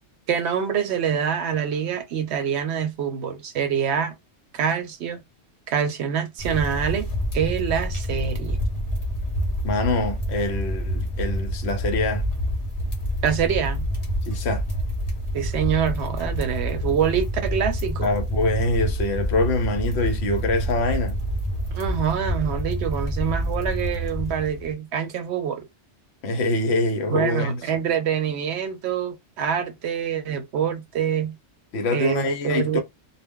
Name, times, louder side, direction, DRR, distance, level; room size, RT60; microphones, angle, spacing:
voice 1, 0.3-4.1 4.5-5.2 5.7-7.1 7.3-8.6 13.2-13.9 15.3-18.1 21.7-25.7 27.1-31.4 31.9-32.8, right 8 dB, 70° right, 0.8 m, -25 dB
sound 1, 6.4-24.7, equal, 40° left, 0.7 m, -27 dB
voice 2, 9.6-12.2 14.2-14.6 18.0-21.2 26.2-27.6 31.7-32.8, left 2 dB, 65° left, 0.9 m, -24 dB
2.2 x 2.1 x 3.5 m
omnidirectional pair, 1.2 m